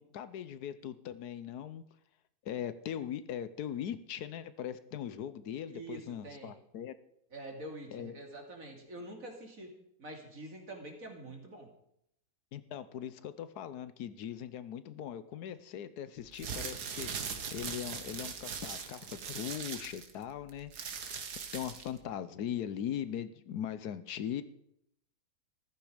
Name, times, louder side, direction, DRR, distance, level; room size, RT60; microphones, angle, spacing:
voice 1, 0.0-1.8 2.4-6.9 7.9-8.2 12.5-17.2 17.5-20.7 21.5-24.4, left 10 dB, 80° left, 14 dB, 1.3 m, -40 dB
voice 2, 5.7-6.5 7.3-9.7 10.0-11.7, right 2 dB, 60° right, 1 dB, 3.0 m, -46 dB
sound 1, 16.2-22.0, right 6 dB, 85° right, 1.9 m, -40 dB
14.5 x 14.0 x 5.0 m, 0.75 s
omnidirectional pair, 1.7 m